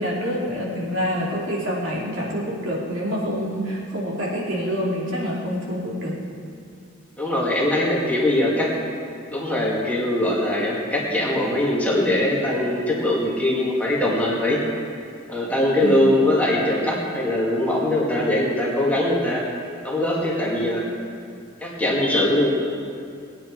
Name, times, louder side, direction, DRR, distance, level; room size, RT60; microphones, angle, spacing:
voice 1, 0.0-6.2 15.8-16.1 20.6-20.7, equal, 65° right, -5 dB, 3.1 m, -27 dB
voice 2, 7.2-8.7 9.3-14.6 15.3-19.4 19.8-20.8 21.6-22.5, left 1 dB, 5° left, -5 dB, 2.1 m, -21 dB
19.0 x 9.1 x 4.7 m, 2.4 s
head